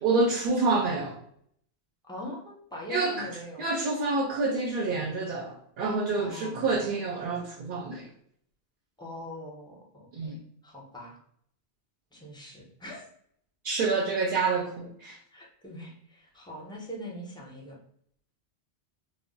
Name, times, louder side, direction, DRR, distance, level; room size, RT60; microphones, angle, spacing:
voice 1, 0.0-1.2 2.9-3.3 3.6-8.1 10.1-10.4 13.6-15.2, right 3 dB, 60° right, 0 dB, 0.6 m, -28 dB
voice 2, 2.0-3.7 6.1-6.9 9.0-10.3 10.6-11.2 12.1-13.1 15.3-17.8, left 1 dB, 5° left, -2 dB, 0.4 m, -42 dB
2.2 x 2.0 x 3.7 m, 0.67 s
omnidirectional pair, 1.1 m